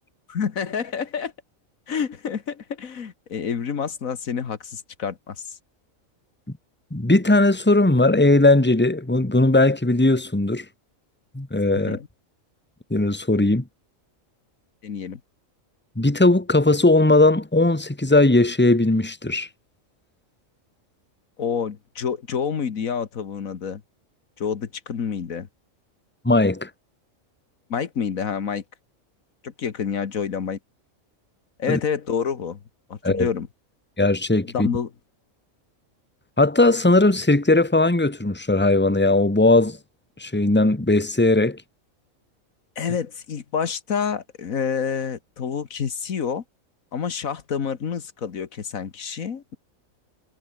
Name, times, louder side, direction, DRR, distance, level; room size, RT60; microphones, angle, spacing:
voice 1, 0.3-1.3 1.9-5.5 11.8-12.0 14.8-15.2 21.4-23.8 24.4-25.5 27.7-28.6 29.4-30.6 31.6-32.6 32.9-33.5 34.5-34.9 42.8-46.4 46.9-49.6, left 7 dB, 80° left, 1.8 m, -28 dB
voice 2, 6.9-10.6 11.3-12.0 12.9-13.6 15.9-19.5 26.2-26.7 31.7-31.8 33.0-33.3 34.0-34.7 36.4-39.8 40.2-41.6, left 2 dB, 10° left, 1.7 m, -18 dB
omnidirectional pair, 1.4 m